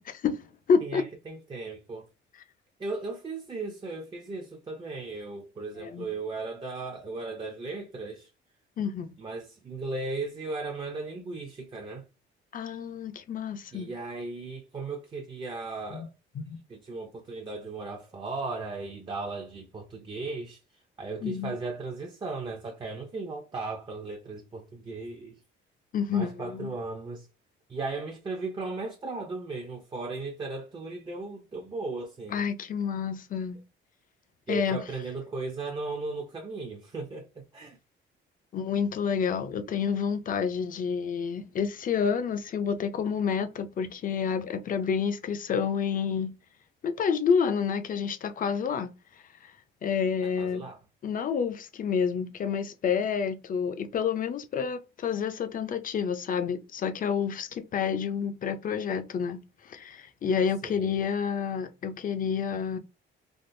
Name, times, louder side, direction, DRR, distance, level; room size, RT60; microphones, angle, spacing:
voice 1, 0.0-1.0 5.8-6.1 8.8-9.1 12.5-13.9 15.9-16.1 16.4-16.5 21.2-21.5 25.9-26.7 32.3-33.6 34.5-34.8 38.5-46.3 46.8-48.9 49.4-49.5 49.8-50.6 51.0-59.4 59.6-62.8, left 6 dB, 40° left, 0.5 m, -29 dB
voice 2, 0.8-2.1 2.8-8.3 9.2-12.0 13.7-16.1 16.7-25.4 26.1-27.3 27.7-32.4 34.5-37.8 50.2-50.8 60.6-61.0, right 3 dB, 25° right, 0.5 m, -36 dB
3.5 x 2.4 x 2.6 m
cardioid pair, 125°, 21 cm